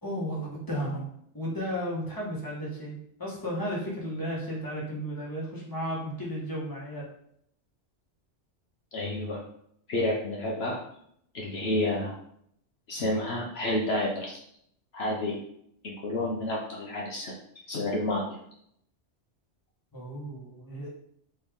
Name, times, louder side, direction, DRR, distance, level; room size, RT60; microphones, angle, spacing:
voice 1, 0.0-1.1 1.3-7.1 19.9-20.9, equal, 20° left, -5 dB, 1.3 m, -34 dB
voice 2, 8.9-9.4 9.9-10.8 11.3-12.2 12.9-14.4 14.9-15.4 15.8-17.4 17.7-18.4, left 1 dB, 65° left, -2 dB, 0.9 m, -30 dB
4.3 x 3.3 x 3.5 m, 0.70 s
omnidirectional pair, 1.2 m